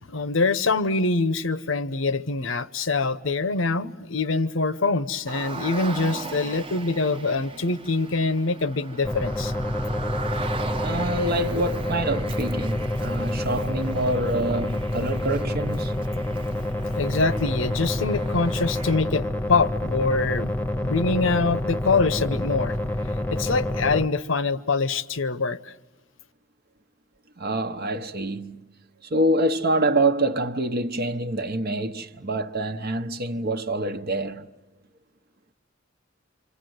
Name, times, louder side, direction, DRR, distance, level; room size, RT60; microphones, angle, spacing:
voice 1, 0.1-9.5 17.0-20.5 20.8-22.8 23.3-25.7, left 3 dB, 80° left, 0.9 m, -24 dB
Car, 5.3-19.0, right 4 dB, 30° right, 1.0 m, -39 dB
sound 1, 9.0-24.1, left 1 dB, 10° left, 0.9 m, -28 dB
voice 2, 10.8-15.9 27.4-28.6 29.0-34.5, right 1 dB, 55° right, 1.0 m, -26 dB
27.5 x 26.0 x 7.9 m
head